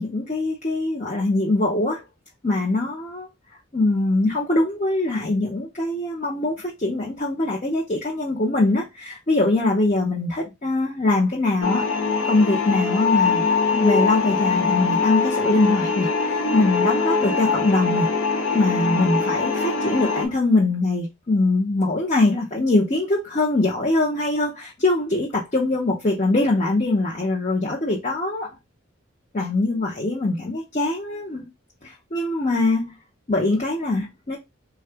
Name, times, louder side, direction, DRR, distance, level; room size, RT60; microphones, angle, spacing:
voice 1, 0.0-2.0 2.4-3.3 3.7-11.8 12.3-13.4 13.7-28.5 29.3-31.5 31.8-33.0 33.3-34.4, left 2 dB, 35° left, 0.7 m, -22 dB
sound 1, 11.6-20.3, left 4 dB, 80° left, 0.7 m, -22 dB
3.7 x 2.4 x 3.3 m
head